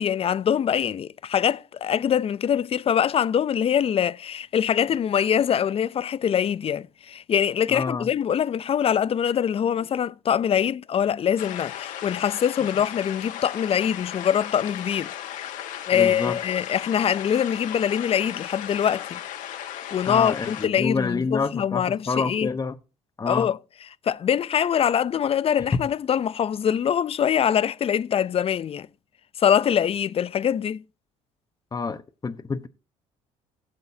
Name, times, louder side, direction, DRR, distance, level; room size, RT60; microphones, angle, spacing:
voice 1, 0.0-15.5 15.9-19.2 19.9-22.5 23.3-23.6 24.0-28.9 29.4-30.8, left 8 dB, 45° left, 0.6 m, -23 dB
voice 2, 7.7-8.1 15.9-16.4 20.0-22.8 23.2-23.5 31.7-32.7, left 4 dB, 25° left, 1.2 m, -28 dB
sound 1, 11.4-20.7, left 11 dB, 75° left, 1.8 m, -36 dB
16.5 x 7.9 x 2.9 m
supercardioid pair, 75°, 14 cm